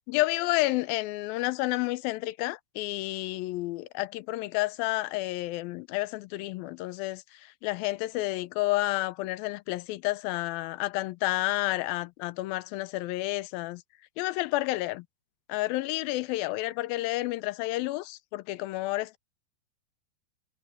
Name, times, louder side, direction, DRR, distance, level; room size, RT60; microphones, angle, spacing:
voice 1, 0.1-13.8 14.2-15.0 15.5-19.2, left 18 dB, 85° left, 2.1 m, -30 dB
omnidirectional pair, 4.8 m